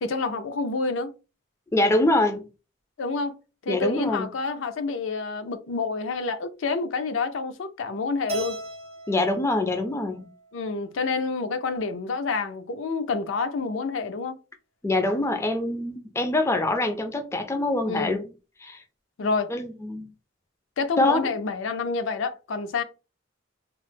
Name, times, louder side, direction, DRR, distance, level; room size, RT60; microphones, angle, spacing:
voice 1, 0.0-1.1 3.0-3.3 3.6-8.6 10.5-14.4 17.9-18.2 19.2-19.5 20.8-22.8, left 4 dB, 75° left, 0.5 m, -28 dB
voice 2, 1.7-2.4 3.7-4.2 9.1-10.3 14.8-18.2 18.6-18.8 19.5-20.1 21.0-21.3, left 2 dB, 15° left, 0.3 m, -24 dB
Keyboard (musical), 8.3-10.6, right 2 dB, 30° right, 0.6 m, -37 dB
3.0 x 2.0 x 3.2 m
head